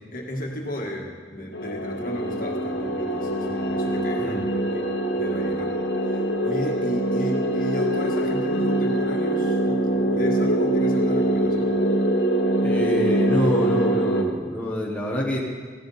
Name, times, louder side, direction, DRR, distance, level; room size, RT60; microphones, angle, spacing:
voice 1, 0.1-4.4 4.7-5.7 6.0-11.8, equal, 50° left, 0 dB, 1.8 m, -34 dB
sound 1, 1.5-14.2, right 1 dB, 65° left, 1.1 m, -23 dB
voice 2, 12.6-15.4, equal, 10° left, -4 dB, 1.4 m, -26 dB
16.0 x 11.5 x 4.2 m, 1.5 s
head